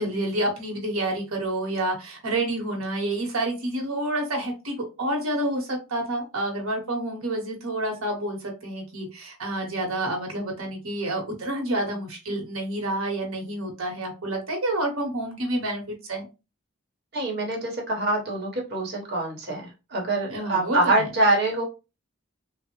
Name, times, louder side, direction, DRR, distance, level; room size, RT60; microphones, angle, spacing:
voice 1, 0.0-15.8 16.1-16.3 20.3-21.0, right 1 dB, 80° right, 2 dB, 0.9 m, -29 dB
voice 2, 17.1-21.6, right 2 dB, 50° right, 1 dB, 0.9 m, -25 dB
3.2 x 2.0 x 2.9 m, 0.28 s
head